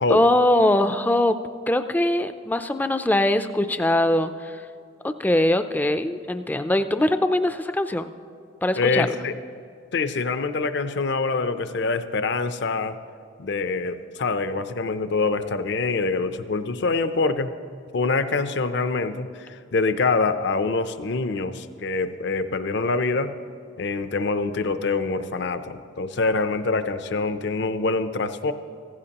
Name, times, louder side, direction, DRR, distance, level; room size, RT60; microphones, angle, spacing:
voice 1, 0.1-1.4 1.7-4.6 5.2-8.1 8.6-9.1, left 1 dB, 10° left, 10 dB, 0.3 m, -21 dB
voice 2, 8.8-9.4 9.9-13.0 13.4-17.5 17.9-23.3 23.8-28.5, left 3 dB, 55° left, 11 dB, 0.5 m, -25 dB
16.0 x 15.5 x 2.9 m, 2.4 s
head